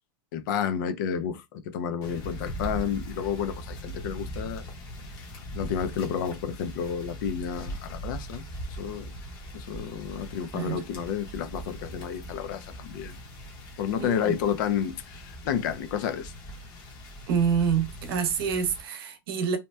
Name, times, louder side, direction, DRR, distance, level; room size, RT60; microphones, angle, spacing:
voice 1, 0.3-4.6 5.5-8.4 8.7-9.1 9.5-13.2 13.8-16.3, left 8 dB, 50° left, 0.5 m, -31 dB
sound 1, 2.0-18.8, equal, 30° left, 0.9 m, -40 dB
voice 2, 14.0-14.4 17.3-19.6, right 7 dB, 65° right, 0.8 m, -27 dB
2.8 x 2.1 x 3.2 m
supercardioid pair, 175°, 14 cm